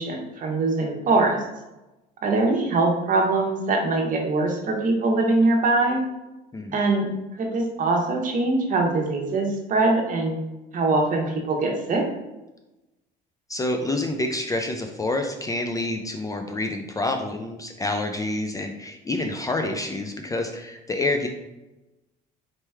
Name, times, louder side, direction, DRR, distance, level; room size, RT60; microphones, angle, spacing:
voice 1, 0.0-1.4 2.2-6.0 6.7-10.4 10.7-12.0, right 2 dB, 45° right, 1 dB, 1.0 m, -22 dB
voice 2, 13.5-21.3, left 2 dB, 20° left, 4 dB, 0.5 m, -28 dB
4.4 x 3.0 x 3.4 m, 1.0 s
supercardioid pair, 90°, 19 cm